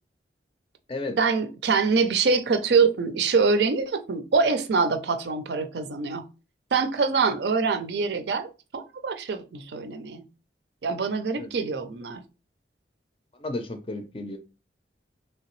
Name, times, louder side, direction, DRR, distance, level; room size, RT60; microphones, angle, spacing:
voice 1, 1.2-6.2 6.7-10.2 10.8-12.2, right 4 dB, 65° right, 0.5 m, -24 dB
voice 2, 13.4-14.4, left 2 dB, 30° left, 0.5 m, -33 dB
3.3 x 2.8 x 3.0 m
head